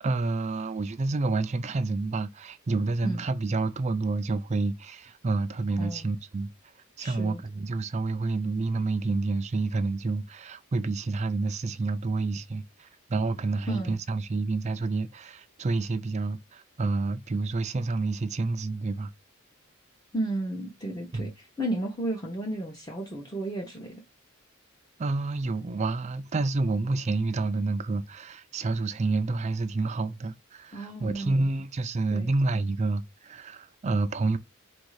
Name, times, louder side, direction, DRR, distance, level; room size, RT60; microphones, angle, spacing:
voice 1, 0.0-6.5 7.0-19.1 21.1-21.3 25.0-34.4, right 3 dB, 30° right, 0.4 m, -29 dB
voice 2, 5.8-6.1 7.0-7.4 13.7-13.9 20.1-24.0 30.7-31.5 32.1-32.3, right 1 dB, 20° left, 0.8 m, -33 dB
4.0 x 2.6 x 4.7 m
head